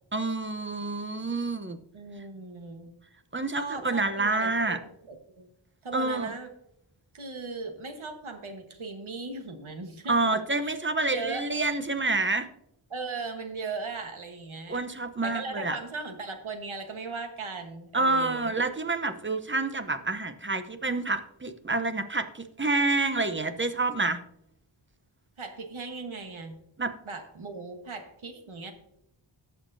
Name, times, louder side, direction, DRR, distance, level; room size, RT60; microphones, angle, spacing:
voice 1, 0.1-1.8 3.3-4.8 5.9-6.3 10.1-12.5 14.7-15.8 17.9-24.2 26.8-26.9, right 3 dB, 25° right, 9 dB, 0.8 m, -28 dB
voice 2, 1.9-2.9 3.5-4.8 5.0-5.5 5.8-6.5 7.1-10.2 10.6-10.8 11.1-11.5 12.9-14.8 15.2-18.6 25.4-26.6 27.0-28.7, right 4 dB, 85° right, 5 dB, 1.4 m, -38 dB
17.5 x 6.6 x 2.7 m, 0.79 s
wide cardioid pair, 75°, 47 cm